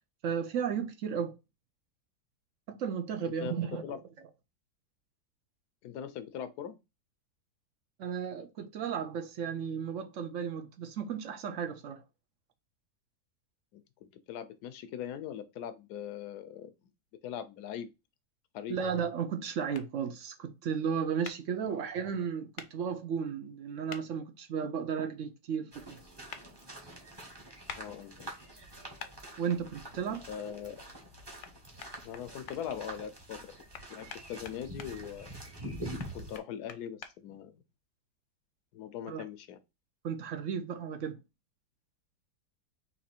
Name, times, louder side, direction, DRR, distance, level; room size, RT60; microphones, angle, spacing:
voice 1, 0.2-1.4 2.7-3.8 8.0-12.0 18.7-26.0 29.4-30.3 39.1-39.2 40.0-41.2, right 7 dB, 60° right, 0.9 m, -34 dB
voice 2, 3.2-4.0 5.8-6.8 13.7-16.7 17.2-17.9 18.5-18.8 21.7-21.8 27.8-28.3 30.1-30.8 32.0-33.5 33.9-35.3 36.1-37.6 38.7-39.6, left 9 dB, 80° left, 1.2 m, -41 dB
sound 1, 19.7-19.9 21.2-21.4 22.6-22.7 23.9-24.0 26.3-26.4 27.7-27.8 29.0-29.1 31.4-31.5 31.8-32.6 33.7-34.9 36.0-37.1, left 7 dB, 60° left, 0.8 m, -44 dB
sound 2, 25.7-36.4, right 1 dB, 20° right, 0.9 m, -46 dB
4.0 x 3.0 x 4.4 m
omnidirectional pair, 1.7 m